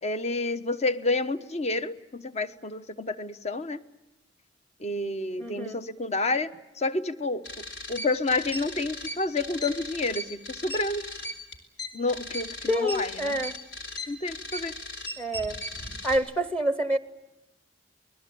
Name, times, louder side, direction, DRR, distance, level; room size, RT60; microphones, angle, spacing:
voice 1, 0.0-3.8 4.8-6.5 6.8-11.0 11.9-13.3 14.1-14.7, left 2 dB, 35° left, 12 dB, 1.0 m, -29 dB
voice 2, 5.4-5.8 12.7-13.6 15.2-15.6 16.0-17.0, equal, 5° left, 13 dB, 0.9 m, -27 dB
sound 1, 7.4-16.2, left 1 dB, 65° left, 4.3 m, -37 dB
28.0 x 21.0 x 8.5 m, 0.97 s
head